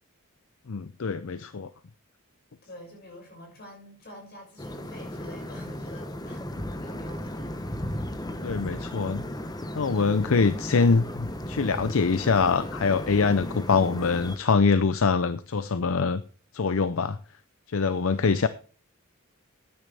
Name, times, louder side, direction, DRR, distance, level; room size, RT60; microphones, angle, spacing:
voice 1, 0.7-1.7 8.4-9.2 9.8-16.2 16.5-17.2 17.7-18.5, left 4 dB, 70° left, 0.6 m, -24 dB
voice 2, 2.6-6.4 6.8-7.6 18.1-18.5, equal, 50° left, 6.1 m, -46 dB
sound 1, 4.6-14.4, left 1 dB, 20° left, 0.9 m, -35 dB
12.5 x 9.6 x 3.4 m
head